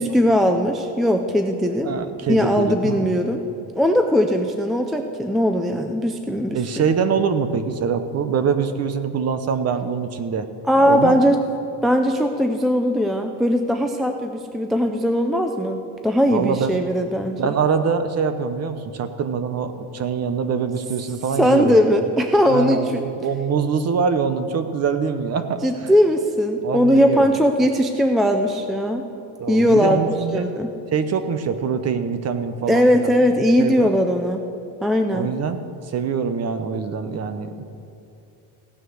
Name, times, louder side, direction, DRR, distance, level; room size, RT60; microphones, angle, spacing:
voice 1, 0.0-1.9 2.3-3.4 3.8-6.6 10.7-11.4 11.8-17.5 21.4-23.0 25.6-29.1 29.5-30.7 32.7-34.4 34.8-35.3, equal, ahead, 5 dB, 0.3 m, -19 dB
voice 2, 1.8-3.1 6.5-10.5 10.8-11.1 16.3-16.7 17.4-21.7 22.5-25.6 26.6-27.3 29.4-30.5 30.9-33.1 33.6-33.9 35.1-35.6 35.9-37.6, right 6 dB, 35° right, 10 dB, 0.9 m, -24 dB
16.5 x 9.6 x 6.4 m, 2.7 s
cardioid pair, 155°, 43 cm